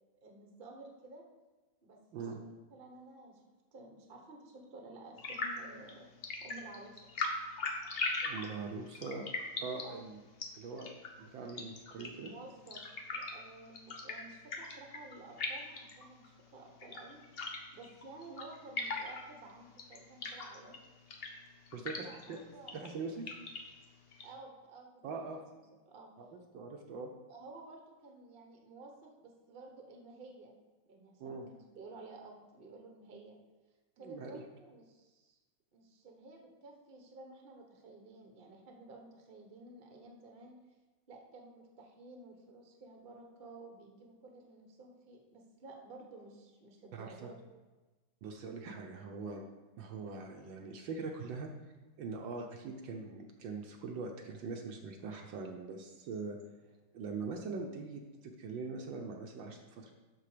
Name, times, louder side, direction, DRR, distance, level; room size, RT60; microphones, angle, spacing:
voice 1, 0.2-1.2 1.8-3.4 3.7-6.1 6.4-7.0 9.8-10.0 12.1-12.8 13.1-20.8 22.0-22.9 24.2-25.0 25.8-26.1 27.3-30.6 30.9-33.4 34.0-35.4 35.7-40.6 41.1-47.4, right 2 dB, 30° right, 2 dB, 1.1 m, -53 dB
sound 1, 5.2-24.3, left 3 dB, 65° left, 0.5 m, -42 dB
voice 2, 8.2-9.3 9.6-10.2 10.5-10.9 11.2-12.3 21.7-22.4 22.7-23.2 25.0-25.4 26.2-27.1 31.2-31.5 34.0-34.4 46.9-47.3 48.2-49.4 49.8-51.5 52.0-56.4 56.9-59.9, right 4 dB, 70° right, 2 dB, 1.4 m, -42 dB
12.5 x 4.3 x 5.0 m, 1.2 s
omnidirectional pair, 2.3 m